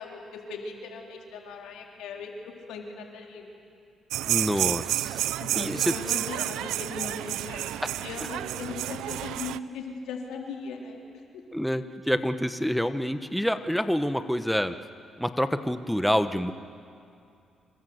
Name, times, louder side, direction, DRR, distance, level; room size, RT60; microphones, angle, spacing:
voice 1, 0.0-3.6 5.4-11.0, left 4 dB, 90° left, 0 dB, 4.0 m, -39 dB
sound 1, 4.1-9.6, right 13 dB, 90° right, 0.6 m, -30 dB
voice 2, 4.3-5.2 5.6-5.9 11.5-14.8 15.2-16.5, equal, ahead, 9 dB, 1.1 m, -27 dB
27.0 x 25.5 x 8.0 m, 2.5 s
cardioid pair, 90°, 0 cm